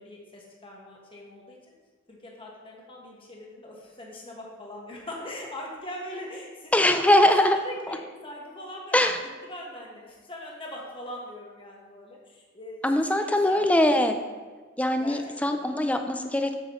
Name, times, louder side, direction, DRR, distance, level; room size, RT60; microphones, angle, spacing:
voice 1, 0.0-1.7 2.1-7.2 7.6-9.1 9.4-14.3 14.9-15.9, left 1 dB, 25° left, -2 dB, 1.4 m, -41 dB
voice 2, 6.7-7.6 7.9-8.0 8.9-9.2 12.8-14.2 14.8-16.5, left 1 dB, 5° left, 6 dB, 0.5 m, -22 dB
8.1 x 6.9 x 3.1 m, 1.4 s
head